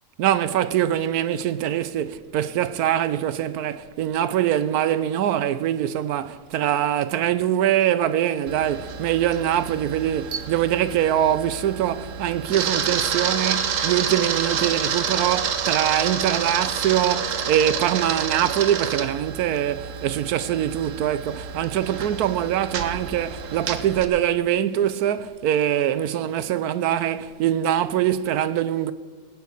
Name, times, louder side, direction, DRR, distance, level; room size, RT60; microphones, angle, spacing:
voice 1, 0.2-28.9, right 11 dB, 85° right, 1.1 m, -23 dB
Camera, 8.5-24.1, right 7 dB, 60° right, 1.2 m, -29 dB
17.5 x 7.0 x 8.1 m
omnidirectional pair, 1.6 m